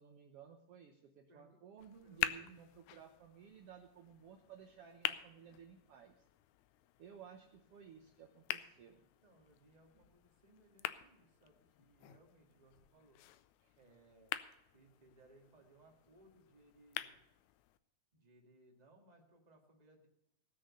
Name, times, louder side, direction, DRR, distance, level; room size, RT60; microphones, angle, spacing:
voice 1, 0.0-6.2 7.0-9.0 13.6-13.7, right 7 dB, 80° right, 4 dB, 1.3 m, -57 dB
voice 2, 1.3-1.6 2.0-2.6 9.0-13.2 13.7-14.3 14.7-17.2 18.1-20.1, right 1 dB, 15° right, 1 dB, 1.6 m, -66 dB
sound 1, 1.8-17.8, left 13 dB, 85° left, 1.6 m, -47 dB
18.5 x 6.5 x 6.8 m, 0.83 s
omnidirectional pair, 4.0 m